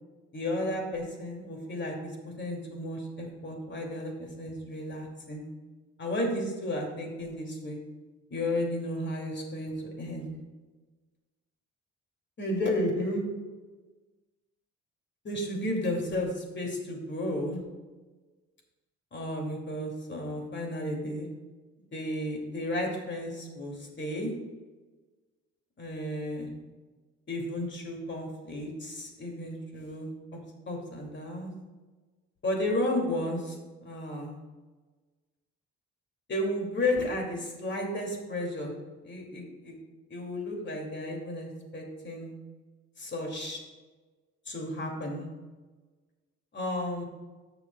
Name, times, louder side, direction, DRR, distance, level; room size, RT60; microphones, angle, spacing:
voice 1, 0.3-5.5 6.0-7.8 8.3-10.3 12.4-13.2 15.2-17.6 19.1-21.3 21.9-24.3 25.8-26.5 27.3-30.1 30.7-31.5 32.4-33.6 33.8-34.4 36.3-38.7 39.0-39.7 40.1-42.3 43.0-43.6 44.5-45.3 46.5-47.0, left 1 dB, 40° left, 1 dB, 2.6 m, -33 dB
13.5 x 7.0 x 2.3 m, 1.3 s
cardioid pair, 90°, 30 cm